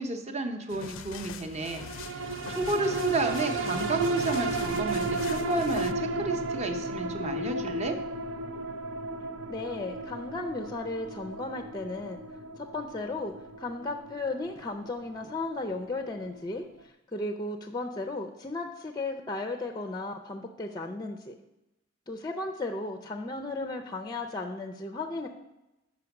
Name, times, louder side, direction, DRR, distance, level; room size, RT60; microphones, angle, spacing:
voice 1, 0.0-2.2 2.5-8.0, right 2 dB, 35° right, 5 dB, 0.7 m, -31 dB
sound 1, 0.7-5.9, left 7 dB, 85° left, 0.4 m, -43 dB
sound 2, 1.7-16.4 16.8-16.9, right 2 dB, 80° right, 0.5 m, -34 dB
voice 2, 9.5-12.2 12.6-21.3 22.1-25.3, left 2 dB, 20° left, 6 dB, 0.4 m, -35 dB
6.2 x 5.1 x 5.8 m, 0.96 s
head